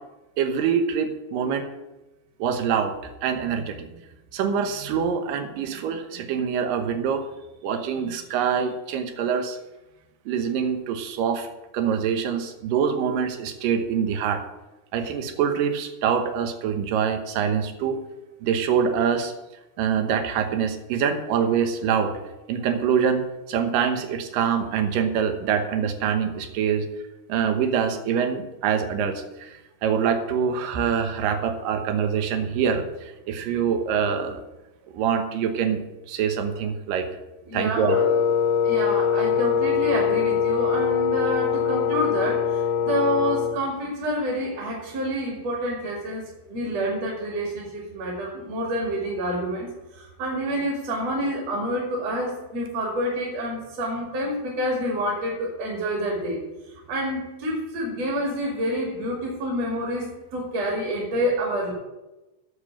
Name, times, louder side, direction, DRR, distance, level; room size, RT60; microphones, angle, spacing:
voice 1, 0.4-1.6 2.4-2.9 3.2-3.9 4.3-7.3 7.6-9.6 10.3-11.5 11.7-14.4 14.9-18.0 18.4-19.3 19.8-22.1 22.5-26.9 27.3-34.4 34.9-35.8 36.1-37.1 37.5-38.1, right 7 dB, 70° right, 7 dB, 2.6 m, -25 dB
voice 2, 37.4-38.0 38.6-56.4 56.9-61.7, equal, 45° right, -2 dB, 3.2 m, -28 dB
Wind instrument woodwind instrument, 37.9-43.7, left 7 dB, 85° left, 2.5 m, -23 dB
8.6 x 7.3 x 8.5 m, 1.0 s
omnidirectional pair, 4.3 m